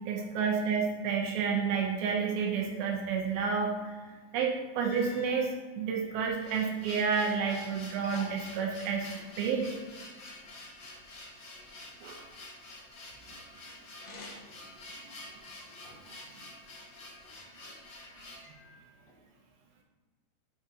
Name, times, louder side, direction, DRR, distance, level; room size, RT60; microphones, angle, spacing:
voice 1, 0.0-5.5 5.8-9.1 9.4-9.7 12.0-12.1 15.0-15.1, right 6 dB, 80° right, 1 dB, 2.2 m, -30 dB
sound 1, 4.2-4.3 4.8-5.6 6.3-7.5 7.8-9.3 13.9-14.7 15.2-16.2 16.9-17.7 18.4-19.2, left 2 dB, 80° left, 1.5 m, -50 dB
sound 2, 6.4-18.5, left 2 dB, 50° left, 1.2 m, -48 dB
11.0 x 4.6 x 2.7 m, 1.4 s
omnidirectional pair, 5.0 m